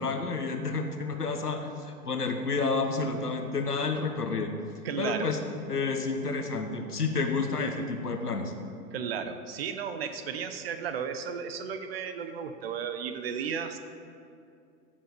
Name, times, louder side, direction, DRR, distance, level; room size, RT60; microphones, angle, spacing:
voice 1, 0.0-4.5 5.0-5.4 5.7-8.5, left 4 dB, 75° left, 6 dB, 1.3 m, -30 dB
voice 2, 4.8-5.3 6.3-6.4 8.9-13.8, right 7 dB, 40° right, 9 dB, 0.8 m, -34 dB
15.0 x 7.3 x 5.2 m, 2.4 s
figure-of-eight pair, 105°, 47 cm